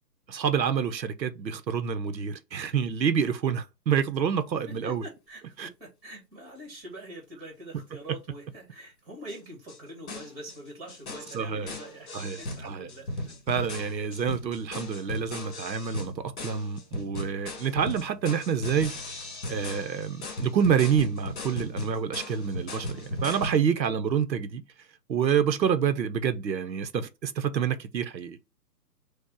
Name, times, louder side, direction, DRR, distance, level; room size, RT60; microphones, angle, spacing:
voice 1, 0.3-5.0 5.6-5.7 7.7-7.8 11.3-11.7 12.1-12.9 13.5-18.9 19.5-24.6 25.1-28.4, right 7 dB, 90° right, 0.9 m, -27 dB
voice 2, 4.7-12.1 12.4-13.1 23.2-23.9, right 1 dB, 15° right, 1.4 m, -44 dB
sound 1, 9.3-9.4 9.7-9.8 10.1-10.6 10.9-23.6, left 1 dB, 40° left, 2.1 m, -37 dB
4.6 x 2.3 x 4.6 m
hypercardioid pair, 160°, 50 cm